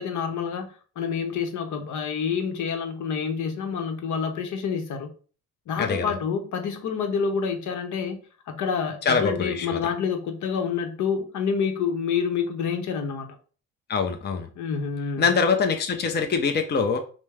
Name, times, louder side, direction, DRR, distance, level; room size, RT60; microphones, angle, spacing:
voice 1, 0.0-5.1 5.7-13.3 14.6-15.3, left 6 dB, 75° left, 5 dB, 0.9 m, -28 dB
voice 2, 9.1-9.8 13.9-14.5 15.2-17.0, left 5 dB, 35° left, 4 dB, 0.6 m, -23 dB
5.2 x 2.1 x 3.4 m, 0.39 s
cardioid pair, 90°, 30 cm